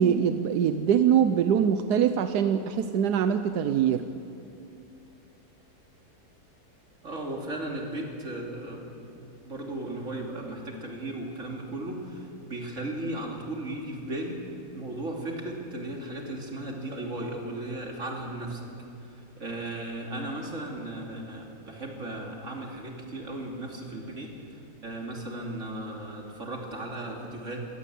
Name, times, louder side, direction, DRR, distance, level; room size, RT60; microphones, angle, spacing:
voice 1, 0.0-4.1, right 8 dB, 85° right, 9 dB, 1.3 m, -23 dB
voice 2, 7.0-8.9 9.4-14.4 14.7-18.7 19.0-27.7, right 1 dB, 50° right, 0 dB, 3.4 m, -36 dB
23.0 x 17.5 x 8.4 m, 2.7 s
omnidirectional pair, 1.7 m